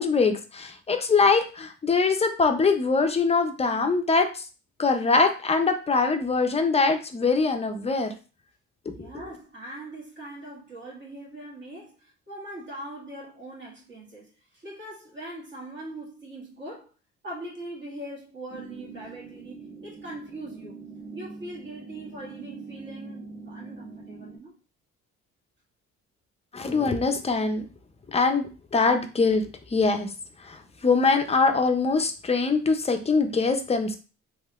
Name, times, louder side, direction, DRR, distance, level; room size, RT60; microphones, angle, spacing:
voice 1, 0.0-4.4 4.8-8.1 9.0-9.1 26.5-27.6 28.1-29.4 29.7-30.1 30.4-34.0, left 4 dB, 20° left, 0.5 m, -23 dB
voice 2, 9.0-16.9 17.2-20.8 21.1-24.6, right 1 dB, 40° right, 1.7 m, -41 dB
sound 1, 18.5-24.4, right 4 dB, 20° right, 1.0 m, -43 dB
3.1 x 3.0 x 2.4 m
cardioid pair, 90°, 30 cm